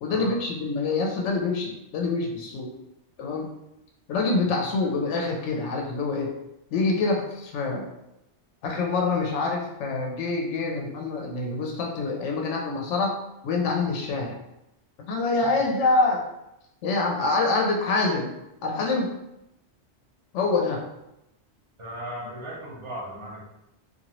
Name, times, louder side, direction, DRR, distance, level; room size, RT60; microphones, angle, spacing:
voice 1, 0.0-2.7 3.2-3.5 4.1-6.3 6.7-7.9 8.6-13.2 13.4-14.4 15.0-16.2 16.8-18.3 18.6-19.1 20.3-20.8, left 3 dB, 80° left, 1 dB, 0.9 m, -26 dB
voice 2, 21.8-23.5, right 1 dB, 30° right, -4 dB, 0.7 m, -37 dB
2.8 x 2.4 x 2.9 m, 0.87 s
omnidirectional pair, 1.2 m